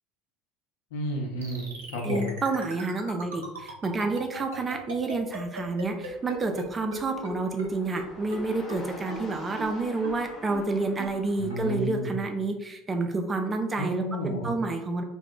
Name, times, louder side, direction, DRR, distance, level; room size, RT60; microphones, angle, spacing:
voice 1, 0.9-2.4 11.4-12.1 13.8-14.5, equal, 75° left, 0 dB, 0.6 m, -31 dB
sound 1, 1.4-6.6 6.9-7.0 7.2-7.3 7.6-7.7 8.0-8.1 8.3-8.4 8.7-8.8 9.1-9.2 9.6-9.7 10.0-10.1 10.5-10.6 11.0-11.1 11.5-11.6, right 2 dB, 80° right, 0.6 m, -38 dB
voice 2, 2.0-15.0, right 3 dB, 25° right, 4 dB, 0.4 m, -29 dB
sound 2, 5.7-12.0, left 2 dB, 35° left, 0.8 m, -47 dB
2.4 x 2.2 x 3.4 m, 0.94 s
hypercardioid pair, 65°, 0 cm